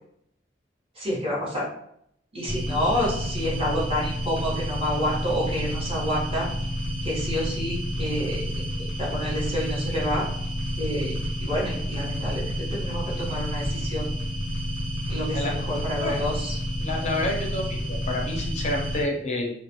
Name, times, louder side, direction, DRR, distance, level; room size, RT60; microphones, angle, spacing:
voice 1, 1.0-1.6 2.3-6.5 7.0-8.5 9.0-10.2 10.8-11.1 11.4-14.1 15.1-16.6, equal, 35° right, -4 dB, 0.9 m, -28 dB
sound 1, 2.5-19.0, equal, 65° right, 1.3 m, -30 dB
voice 2, 16.8-19.5, left 1 dB, 40° left, 1 dB, 0.4 m, -29 dB
2.3 x 2.0 x 2.8 m, 0.73 s
head